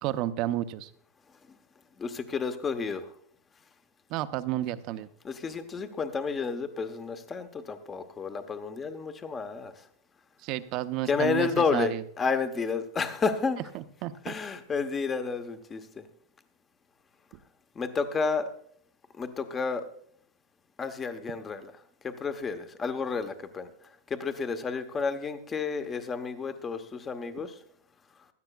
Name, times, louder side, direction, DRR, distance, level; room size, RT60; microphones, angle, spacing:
voice 1, 0.0-0.9 4.1-5.1 10.4-12.0 13.7-14.3, right 14 dB, 45° right, 12 dB, 0.7 m, -31 dB
voice 2, 2.0-3.0 5.2-9.7 11.0-13.6 14.2-16.0 17.8-18.5 19.2-19.8 20.8-21.7 22.0-23.7 24.1-27.5, left 5 dB, 20° left, 9 dB, 0.9 m, -31 dB
16.5 x 13.0 x 2.3 m, 0.62 s
hypercardioid pair, 130°, 0 cm